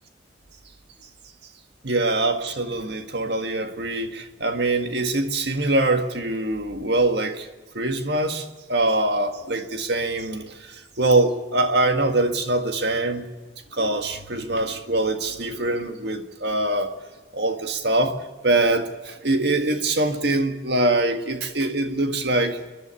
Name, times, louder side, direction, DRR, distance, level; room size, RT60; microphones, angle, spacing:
voice 1, 1.8-7.5 7.7-13.2 13.7-16.9 17.3-22.7, right 2 dB, 60° right, 1.8 m, -23 dB
29.5 x 11.0 x 9.7 m
head